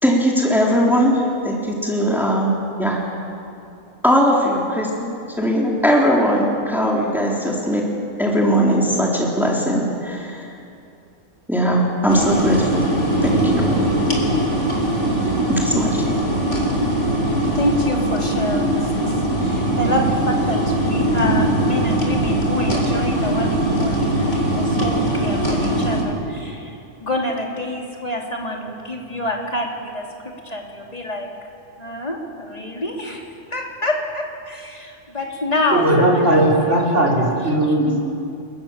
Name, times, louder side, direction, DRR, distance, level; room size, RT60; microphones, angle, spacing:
voice 1, 0.0-3.0 4.0-7.9 8.2-10.5 11.5-12.9 13.2-13.7 15.5-16.2, equal, ahead, -3 dB, 3.7 m, -19 dB
sound 1, 12.1-26.0, right 1 dB, 60° left, 4.5 m, -20 dB
voice 2, 17.5-30.0 30.4-31.3 31.8-33.2 33.5-36.8 37.6-37.7, left 1 dB, 30° left, -1 dB, 3.4 m, -27 dB
voice 3, 35.7-38.0, right 1 dB, 60° right, -2 dB, 5.4 m, -17 dB
28.5 x 22.0 x 7.4 m, 2.6 s
omnidirectional pair, 1.4 m